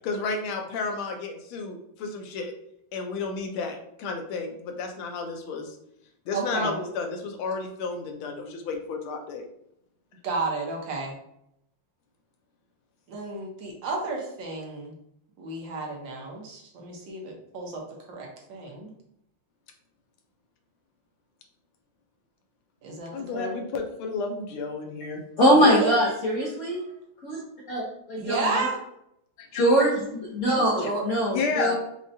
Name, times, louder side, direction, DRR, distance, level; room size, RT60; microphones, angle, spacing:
voice 1, 0.0-2.5 2.9-5.8 6.3-9.4 23.1-25.2 29.4-29.9 30.8-30.9 31.3-31.7, left 4 dB, 90° left, 3 dB, 1.5 m, -32 dB
voice 2, 6.3-6.7 10.2-11.1 13.1-14.9 15.4-17.8 18.1-18.9 22.8-23.5 25.6-26.1 26.5-27.0 28.2-28.8 30.8-31.0, right 2 dB, 70° right, 0 dB, 1.5 m, -32 dB
voice 3, 25.4-26.8 27.2-27.4 27.7-27.8 28.1-28.7 29.5-29.9 30.3-31.7, equal, 60° left, -5 dB, 0.8 m, -22 dB
5.3 x 2.4 x 2.6 m, 0.76 s
omnidirectional pair, 2.2 m